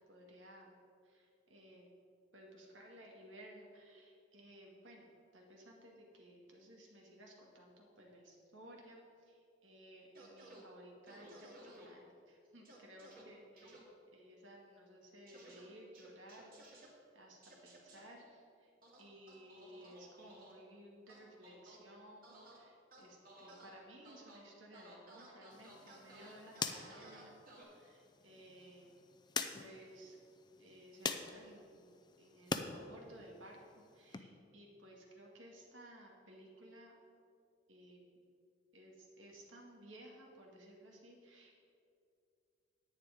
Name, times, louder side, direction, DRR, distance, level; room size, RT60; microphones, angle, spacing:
voice 1, 0.1-1.9 2.3-16.7 17.1-18.7 19.0-27.3 27.6-29.0 29.5-30.2 30.6-36.9 37.7-38.2 38.7-41.6, right 1 dB, 85° right, -1 dB, 2.1 m, -57 dB
sound 1, 10.1-10.6 11.1-11.9 12.6-13.2 13.6-13.8 15.3-15.6 15.9-16.9 17.4-18.0 18.8-20.5 21.1-21.8 22.2-22.6 22.9-23.7 24.0-24.4 24.7-27.6, right 1 dB, 50° right, 2.6 m, -57 dB
sound 2, 25.5-32.7 33.1-34.2, left 4 dB, 25° left, 0.5 m, -45 dB
10.0 x 9.1 x 5.2 m, 2.4 s
head